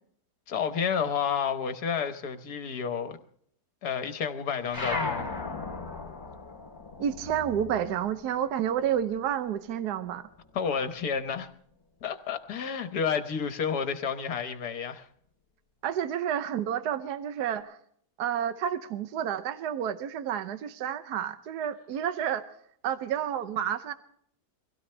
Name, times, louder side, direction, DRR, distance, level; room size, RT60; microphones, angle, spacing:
voice 1, 0.5-3.2 3.8-5.3 10.5-11.5 12.0-15.1, left 6 dB, 70° left, 1.7 m, -30 dB
sound 1, 4.7-9.6 9.9-11.3, left 3 dB, 30° left, 3.3 m, -37 dB
voice 2, 7.0-10.3 15.8-17.8 18.2-22.4 22.8-23.9, right 9 dB, 75° right, 1.4 m, -30 dB
24.0 x 16.5 x 3.3 m
omnidirectional pair, 1.8 m